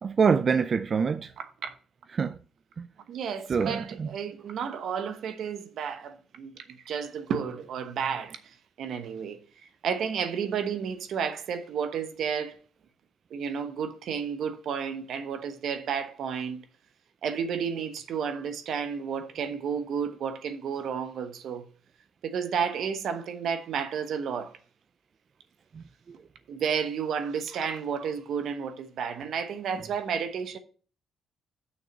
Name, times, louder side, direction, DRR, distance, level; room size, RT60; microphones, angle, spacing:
voice 1, 0.0-1.3 2.1-2.4 2.8-2.9 3.5-4.1, right 6 dB, 45° right, 0.4 m, -25 dB
voice 2, 1.4-1.8 3.1-9.4 9.8-12.6 13.3-16.7 17.2-21.6 22.2-24.6 26.5-30.6, right 7 dB, 70° right, 1.1 m, -32 dB
6.5 x 6.0 x 6.6 m
cardioid pair, 90°, 0 cm